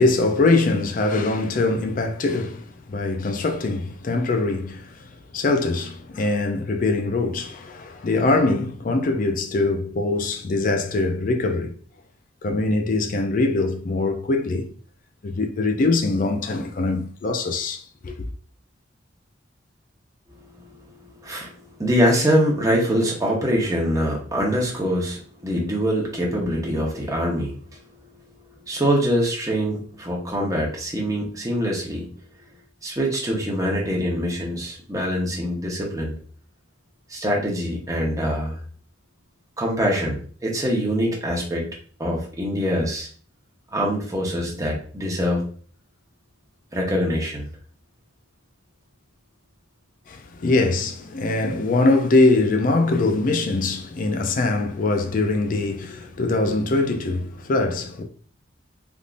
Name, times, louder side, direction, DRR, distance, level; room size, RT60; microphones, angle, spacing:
voice 1, 0.0-11.7 12.4-14.7 15.2-18.2 50.1-58.0, left 2 dB, 45° left, 0.4 m, -22 dB
voice 2, 20.4-27.8 28.7-32.1 32.8-36.1 37.1-38.6 39.6-41.7 42.0-43.1 43.7-45.5 46.7-47.4, equal, 20° right, 0.9 m, -24 dB
3.5 x 2.6 x 2.5 m
head